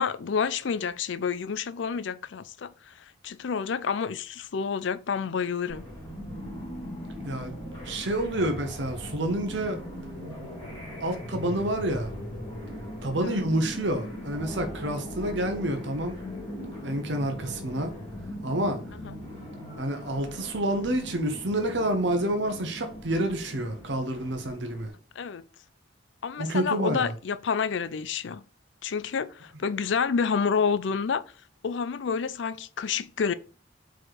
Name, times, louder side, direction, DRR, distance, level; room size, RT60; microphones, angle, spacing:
voice 1, 0.0-2.9 3.2-5.8 13.2-13.4 19.0-19.2 25.2-25.4 26.2-28.4 28.8-31.2 31.6-33.3, left 6 dB, 70° left, 0.4 m, -29 dB
sound 1, 5.7-24.9, equal, 20° left, 2.5 m, -39 dB
voice 2, 7.8-9.8 11.0-12.1 13.0-16.2 16.8-17.9 18.4-18.8 19.8-24.9 26.4-27.1, right 1 dB, 65° right, 1.0 m, -28 dB
4.7 x 4.4 x 4.7 m
head